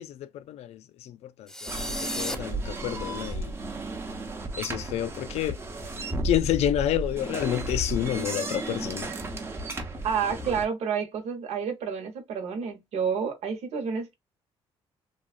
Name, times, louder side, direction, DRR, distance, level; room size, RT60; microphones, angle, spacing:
voice 1, 0.0-3.5 4.6-5.6 6.2-9.1, left 12 dB, 80° left, 0.4 m, -29 dB
sound 1, 1.5-2.3, left 1 dB, 5° left, 0.3 m, -33 dB
sound 2, 1.7-10.6, right 1 dB, 20° right, 0.7 m, -34 dB
voice 2, 10.0-14.1, right 6 dB, 80° right, 1.1 m, -29 dB
3.3 x 2.3 x 2.4 m
cardioid pair, 140°, 11 cm